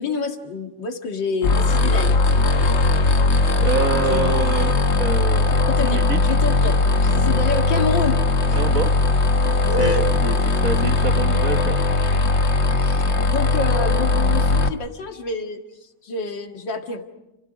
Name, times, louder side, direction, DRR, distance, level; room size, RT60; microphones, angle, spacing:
voice 1, 0.0-2.2 4.1-4.3 5.7-6.8 7.0-8.6 9.7-10.0 12.6-17.0, left 4 dB, 75° left, 2.7 m, -28 dB
sound 1, 1.4-14.7, left 3 dB, 40° left, 1.3 m, -19 dB
voice 2, 3.6-6.2 8.5-9.0 9.4-11.8, right 5 dB, 50° right, 1.6 m, -27 dB
30.0 x 29.5 x 5.1 m
omnidirectional pair, 2.0 m